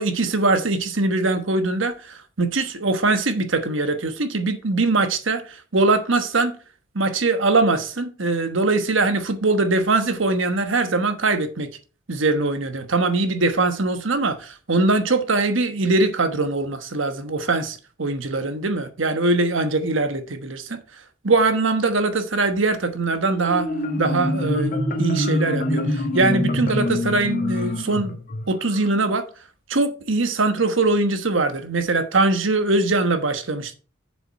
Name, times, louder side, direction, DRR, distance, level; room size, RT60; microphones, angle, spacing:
voice 1, 0.0-6.5 6.9-11.7 12.1-20.8 21.2-23.7 24.0-24.7 25.0-28.2 28.5-29.3 29.7-33.7, right 3 dB, 70° right, 1.2 m, -22 dB
Marimba xylophone, 23.3-28.9, left 1 dB, 45° left, 1.5 m, -25 dB
7.2 x 7.0 x 4.5 m
head